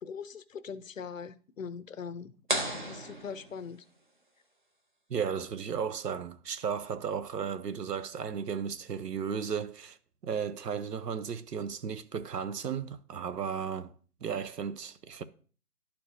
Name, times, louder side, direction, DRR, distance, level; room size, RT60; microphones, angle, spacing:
voice 1, 0.0-2.3 2.9-3.8, left 6 dB, 55° left, 0.6 m, -41 dB
sound 1, 2.5-4.2, right 1 dB, 35° right, 0.6 m, -35 dB
voice 2, 5.1-10.0 10.2-13.9 14.2-15.2, right 7 dB, 90° right, 0.9 m, -34 dB
12.0 x 4.6 x 2.6 m
hypercardioid pair, 170°, 47 cm